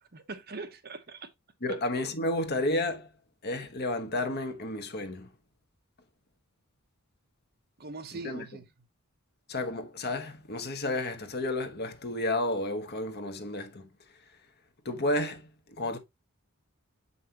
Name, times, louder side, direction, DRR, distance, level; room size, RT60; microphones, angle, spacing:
voice 1, 0.1-1.3 1.7-1.8 7.8-8.6, right 3 dB, 45° right, 1.0 m, -41 dB
voice 2, 1.6-3.1 3.4-5.3 8.2-8.5 9.5-13.8 14.8-15.4 15.8-16.0, left 1 dB, 50° left, 1.2 m, -31 dB
7.4 x 5.5 x 2.9 m
head